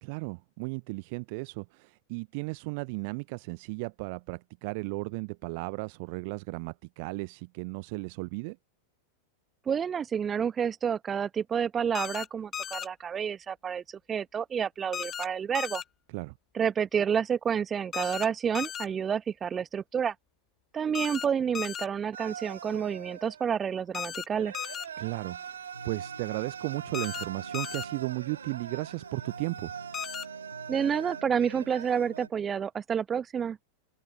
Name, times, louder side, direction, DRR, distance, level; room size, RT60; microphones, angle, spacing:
voice 1, 0.0-8.6 16.1-16.3 25.0-29.7, right 30 dB, 45° right, 0.5 m, -35 dB
voice 2, 9.7-15.8 16.5-20.1 20.7-24.6 30.7-33.6, right 7 dB, 20° right, 1.2 m, -29 dB
sound 1, 11.9-12.3 12.5-12.9 14.9-15.3 15.5-15.8 17.9-18.3 18.5-18.9 20.9-21.3 21.5-21.9 23.9-24.2 24.5-24.9 26.9-27.2 27.5-27.8 29.9-30.2, left 8 dB, 25° left, 1.4 m, -35 dB
sound 2, 22.1-23.4 24.3-32.3, right 8 dB, 65° right, 2.6 m, -42 dB
sound 3, 25.7-32.3, right 1 dB, 85° right, 5.2 m, -49 dB
open air
figure-of-eight pair, 90°, 0 cm